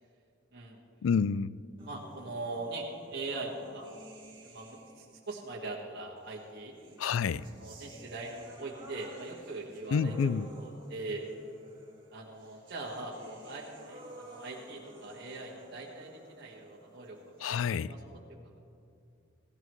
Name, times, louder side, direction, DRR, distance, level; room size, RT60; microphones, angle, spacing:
voice 1, 1.0-1.6 7.0-7.4 9.9-10.5 17.4-17.9, left 6 dB, 85° left, 18 dB, 0.4 m, -28 dB
sound 1, 1.8-5.2 6.2-17.8, right 2 dB, 25° right, 2.5 m, -53 dB
voice 2, 1.8-3.9 4.4-6.7 7.6-10.3 10.6-11.2 12.1-18.6, right 2 dB, 60° right, -3 dB, 1.7 m, -41 dB
17.0 x 16.0 x 3.2 m, 2.4 s
head